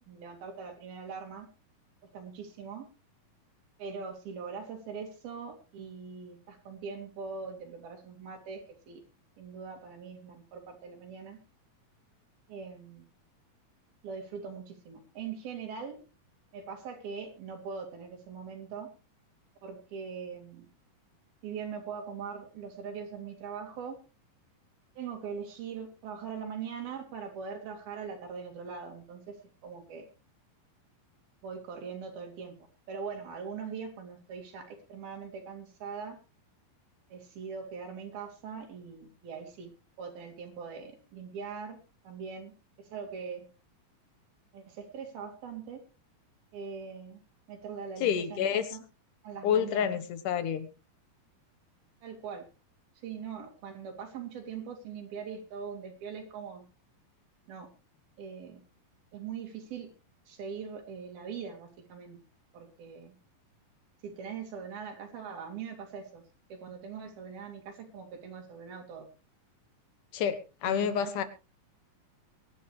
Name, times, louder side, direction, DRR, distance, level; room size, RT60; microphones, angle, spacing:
voice 1, 0.0-1.5 2.0-2.9 3.8-9.0 9.4-11.4 12.5-13.1 14.0-16.0 16.5-18.9 19.6-20.7 21.4-24.0 25.0-29.4 29.6-30.1 31.4-32.6 32.9-36.2 37.1-39.7 40.0-41.8 42.0-43.5 44.5-45.8 46.5-47.2 47.5-48.8 49.2-50.0 52.0-52.5 53.0-56.6 57.5-57.7 58.2-58.6 59.1-59.9 60.3-62.2 62.5-63.2 64.0-66.2 66.5-69.1 70.6-71.1, right 6 dB, 85° right, 3 dB, 4.5 m, -41 dB
voice 2, 48.0-48.7 49.4-50.7 70.1-71.2, left 8 dB, 70° left, 12 dB, 2.5 m, -28 dB
23.0 x 10.5 x 3.3 m, 0.32 s
omnidirectional pair, 4.2 m